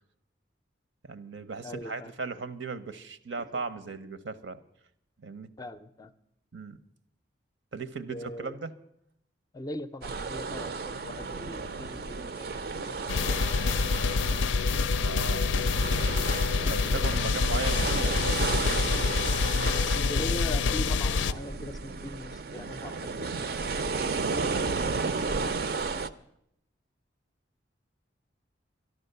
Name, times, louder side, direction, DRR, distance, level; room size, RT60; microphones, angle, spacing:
voice 1, 1.0-4.6 5.2-5.5 6.5-6.8 7.7-8.7 14.9-15.5 16.7-18.1 24.1-24.7, right 4 dB, 75° right, 12 dB, 0.8 m, -37 dB
voice 2, 1.6-2.1 5.6-6.1 8.1-8.6 9.5-14.1 19.7-23.7, left 1 dB, 20° left, 11 dB, 0.4 m, -41 dB
sound 1, 10.0-26.1, right 4 dB, 55° right, 0.5 m, -33 dB
sound 2, 13.1-21.3, left 4 dB, 80° left, 0.4 m, -26 dB
12.5 x 11.5 x 6.7 m, 0.77 s
head